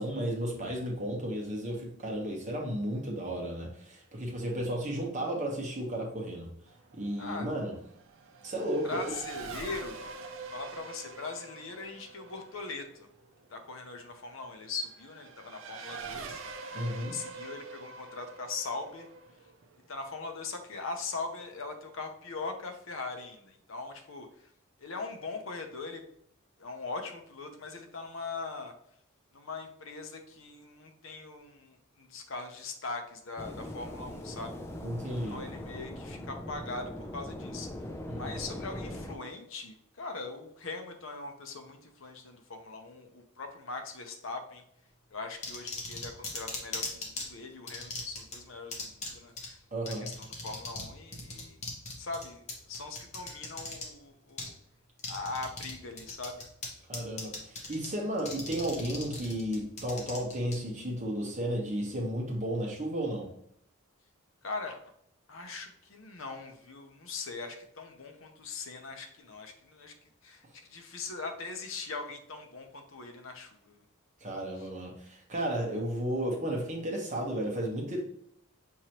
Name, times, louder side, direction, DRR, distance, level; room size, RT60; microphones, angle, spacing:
voice 1, 0.0-6.5 6.9-7.7 8.4-9.0 16.7-17.2 34.8-35.4 38.1-38.3 49.7-50.1 56.9-63.3 74.2-78.0, right 1 dB, 35° right, -1 dB, 1.0 m, -33 dB
Race car auto racing / Accelerating revving vroom, 6.7-20.7, right 4 dB, 65° right, 0.5 m, -45 dB
voice 2, 7.2-7.5 8.8-10.1 10.5-13.1 13.5-16.7 17.1-19.1 19.9-24.3 24.8-26.0 26.6-28.7 29.3-34.6 35.3-37.7 38.2-44.6 45.1-49.6 49.8-51.6 52.0-54.5 55.1-56.4 64.4-64.8 65.3-69.9 70.2-73.8 74.6-74.7, left 3 dB, 70° left, 6 dB, 0.7 m, -41 dB
sound 1, 33.4-39.2, left 1 dB, 10° left, 0.3 m, -41 dB
sound 2, 45.4-47.2 47.7-48.4 48.7-49.1 49.4-49.5 49.9-50.9 51.1-53.8 54.4-54.5 55.0-55.7 56.0-56.7 56.9-57.9 58.2-60.6, left 3 dB, 30° left, 1.0 m, -38 dB
6.3 x 2.9 x 2.9 m, 0.71 s
head